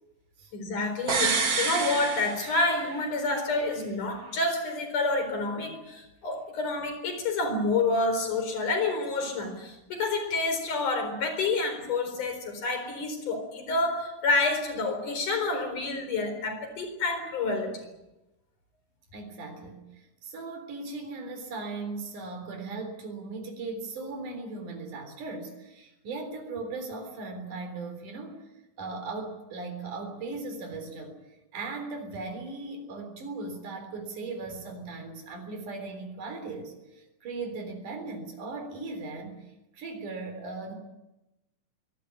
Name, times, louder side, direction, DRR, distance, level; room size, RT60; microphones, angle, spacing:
voice 1, 0.5-17.7, left 3 dB, 80° left, 7 dB, 5.7 m, -28 dB
sound 1, 1.1-3.0 3.3-3.4, right 4 dB, 40° right, 3.4 m, -28 dB
voice 2, 19.1-28.4 28.8-40.8, right 3 dB, 85° right, 5 dB, 5.3 m, -38 dB
23.0 x 18.5 x 9.7 m, 0.95 s
omnidirectional pair, 3.5 m